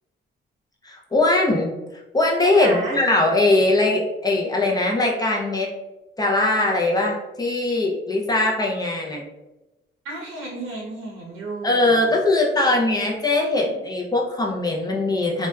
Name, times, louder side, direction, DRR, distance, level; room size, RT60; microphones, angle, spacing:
voice 1, 0.8-1.7 2.1-5.7 6.2-9.2 11.6-15.5, left 2 dB, 20° left, -1 dB, 0.5 m, -21 dB
voice 2, 2.5-3.0 10.0-12.1, right 2 dB, 90° right, -3 dB, 0.8 m, -33 dB
2.7 x 2.2 x 2.2 m, 1.0 s
cardioid pair, 90°, 20 cm